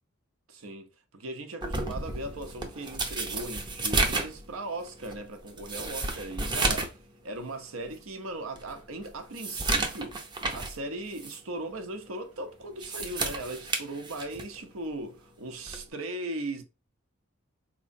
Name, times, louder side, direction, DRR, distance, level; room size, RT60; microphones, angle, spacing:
voice 1, 0.5-7.0 7.2-10.2 10.5-16.6, right 1 dB, 80° right, 0.8 m, -38 dB
sound 1, 1.6-7.0 7.4-7.5 8.0-8.1 8.6-10.8 11.2-11.4 12.6-14.6 15.7-15.9, right 3 dB, 20° right, 0.6 m, -32 dB
4.0 x 3.0 x 2.6 m
head